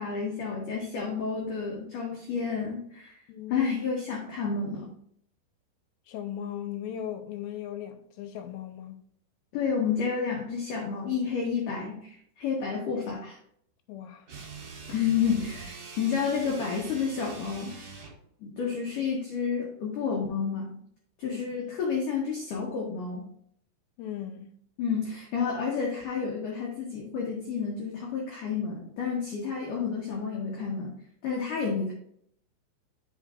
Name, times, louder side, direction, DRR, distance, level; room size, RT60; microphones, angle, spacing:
voice 1, 0.0-3.2 3.5-5.0 9.5-13.4 14.9-17.7 18.4-20.8 21.2-23.2 24.8-30.9 31.2-31.9, left 6 dB, 65° left, 2.2 m, -30 dB
voice 2, 3.3-3.7 6.1-9.0 13.9-14.3 21.2-21.4 24.0-24.5, left 10 dB, 90° left, 2.9 m, -38 dB
sound 1, 14.2-18.2, right 4 dB, 85° right, 1.1 m, -43 dB
12.0 x 5.3 x 2.5 m
omnidirectional pair, 5.1 m